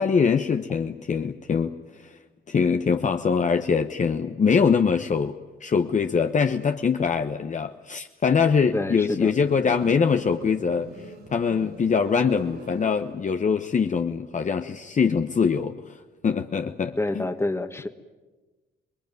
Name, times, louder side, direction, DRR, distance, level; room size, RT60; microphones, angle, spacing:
voice 1, 0.0-2.1 2.5-10.9 11.3-16.0 16.2-17.3, left 6 dB, 40° left, 6 dB, 1.1 m, -23 dB
voice 2, 8.7-9.3 17.0-17.9, left 2 dB, 10° left, 8 dB, 1.8 m, -27 dB
Motorcycle, 9.2-13.5, right 1 dB, 55° right, 4.5 m, -43 dB
26.5 x 20.5 x 9.3 m, 1.2 s
cardioid pair, 90°, 20 cm